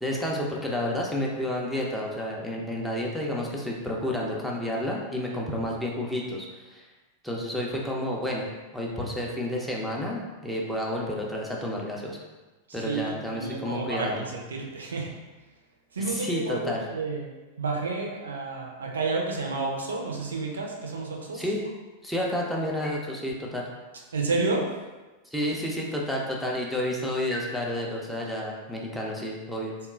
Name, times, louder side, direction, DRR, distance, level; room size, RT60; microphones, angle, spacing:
voice 1, 0.0-6.9 7.2-8.4 8.7-12.2 12.7-14.2 16.1-16.8 21.3-21.6 22.0-23.7 25.3-29.7, left 1 dB, ahead, -3 dB, 0.4 m, -30 dB
voice 2, 12.8-15.1 15.9-17.3 17.6-21.4 24.1-24.7, right 3 dB, 70° right, 0 dB, 0.3 m, -30 dB
2.8 x 2.2 x 2.2 m, 1.2 s
figure-of-eight pair, 90°, 0 cm